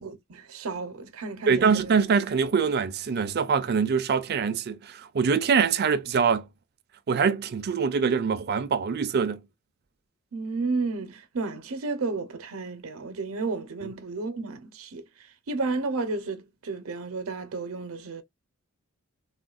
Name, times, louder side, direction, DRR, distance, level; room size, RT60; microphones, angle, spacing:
voice 1, 0.0-1.9 10.3-15.0 15.5-18.2, right 3 dB, 85° right, 0.7 m, -32 dB
voice 2, 1.5-6.5 7.1-9.4, right 6 dB, 50° right, 0.4 m, -24 dB
3.6 x 2.2 x 2.3 m
head